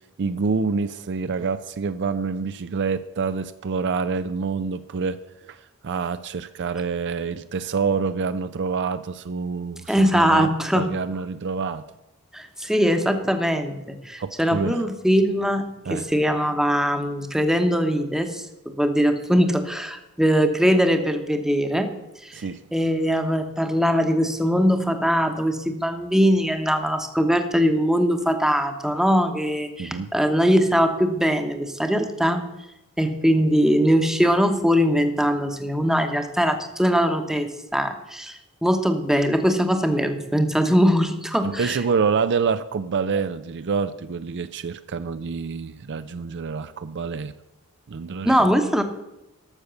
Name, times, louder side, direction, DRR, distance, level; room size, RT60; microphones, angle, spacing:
voice 1, 0.2-5.2 5.5-11.9 14.2-14.8 15.8-16.1 22.3-22.6 29.8-30.1 41.4-47.3 47.9-48.5, right 5 dB, 55° right, 12 dB, 0.5 m, -27 dB
voice 2, 9.9-10.8 12.3-15.7 15.9-18.5 18.7-21.9 22.2-22.4 22.7-32.4 33.0-41.8 48.2-48.8, equal, ahead, 6 dB, 1.0 m, -21 dB
13.0 x 6.7 x 7.0 m, 0.92 s
head